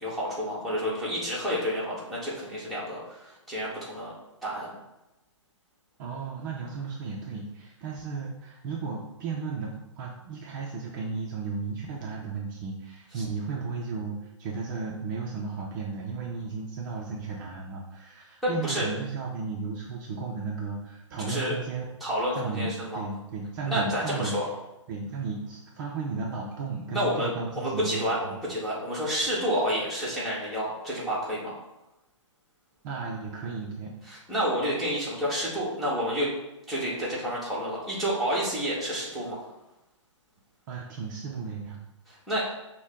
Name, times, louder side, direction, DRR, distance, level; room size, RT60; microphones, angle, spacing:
voice 1, 0.0-4.1 4.4-4.7 13.1-13.2 18.4-18.9 21.2-21.6 22.0-23.0 23.7-24.4 26.9-31.5 34.1-36.3 36.7-39.4 42.1-42.5, equal, ahead, -9 dB, 1.5 m, -29 dB
voice 2, 6.0-21.9 22.3-24.4 24.9-28.3 32.8-33.9 40.7-41.8, right 4 dB, 40° right, -2 dB, 0.6 m, -34 dB
6.1 x 2.2 x 3.6 m, 0.95 s
hypercardioid pair, 130°, 16 cm